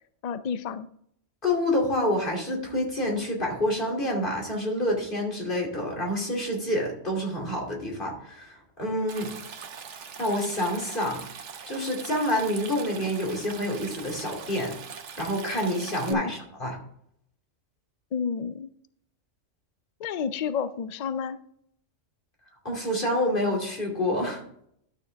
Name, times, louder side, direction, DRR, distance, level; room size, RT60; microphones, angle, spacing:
voice 1, 0.2-0.9 16.1-16.3 18.1-18.7 20.0-21.4, left 6 dB, 70° left, 13 dB, 0.4 m, -30 dB
voice 2, 1.4-9.3 10.2-11.2 11.7-14.7 15.2-16.8 22.6-24.4, left 1 dB, 40° left, -1 dB, 2.9 m, -28 dB
Stream, 9.1-16.1, right 6 dB, 65° right, 1.2 m, -41 dB
12.0 x 6.6 x 3.4 m, 0.68 s
omnidirectional pair, 1.3 m